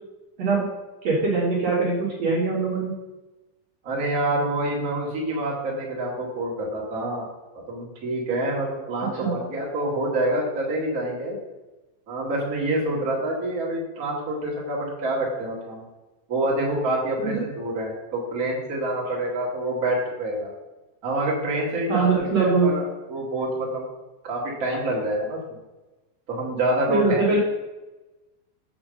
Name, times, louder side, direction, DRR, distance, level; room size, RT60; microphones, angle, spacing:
voice 1, 1.0-2.9 9.2-9.4 17.2-17.4 21.9-22.7 26.9-27.4, right 4 dB, 65° right, -4 dB, 1.7 m, -22 dB
voice 2, 3.8-7.3 7.7-11.4 12.1-15.8 16.3-20.5 21.0-23.9 24.2-25.6 26.3-27.4, right 1 dB, 85° right, -4 dB, 0.7 m, -27 dB
6.3 x 5.9 x 6.4 m, 1.1 s
omnidirectional pair, 5.2 m